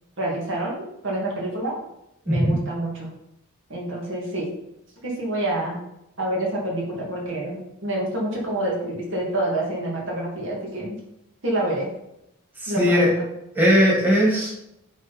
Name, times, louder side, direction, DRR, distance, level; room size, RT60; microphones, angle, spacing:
voice 1, 0.2-1.7 2.3-3.1 3.7-4.5 5.0-5.8 6.2-11.0 11.4-11.9 12.7-13.1, right 1 dB, 70° right, -3 dB, 2.4 m, -27 dB
voice 2, 12.6-13.1 13.5-14.5, equal, 10° right, -4 dB, 1.8 m, -18 dB
9.5 x 4.0 x 4.2 m, 0.84 s
head